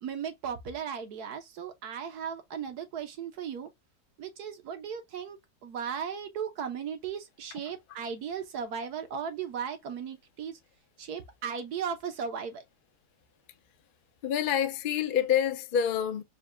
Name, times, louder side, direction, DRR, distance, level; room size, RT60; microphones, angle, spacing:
voice 1, 0.0-3.7 4.2-10.6 11.0-12.6, right 7 dB, 80° right, 1.5 m, -36 dB
voice 2, 14.2-16.2, left 9 dB, 60° left, 0.5 m, -27 dB
4.8 x 2.3 x 3.3 m
omnidirectional pair, 1.6 m